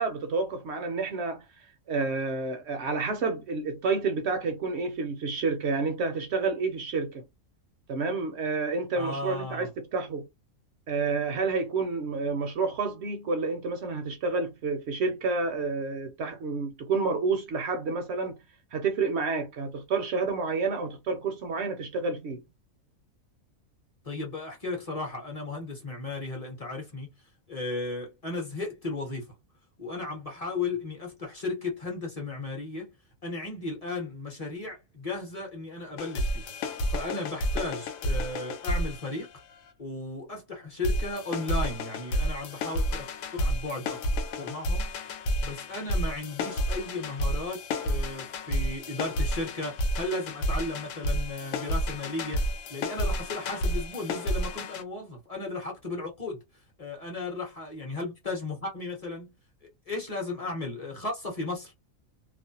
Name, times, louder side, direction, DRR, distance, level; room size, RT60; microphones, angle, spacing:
voice 1, 0.0-7.2 7.9-10.3 10.9-18.4 18.7-22.4, right 4 dB, 65° right, 0.7 m, -29 dB
voice 2, 8.9-9.7 24.0-27.1 27.5-29.3 29.8-32.9 33.2-36.5 36.9-39.3 39.8-43.1 43.3-44.0 44.4-44.9 45.4-52.4 52.7-56.4 56.8-59.3 59.9-61.7, left 2 dB, 35° left, 0.8 m, -35 dB
sound 1, 36.0-39.7 40.8-54.8, equal, 80° left, 1.0 m, -30 dB
2.5 x 2.0 x 2.7 m
omnidirectional pair, 1.4 m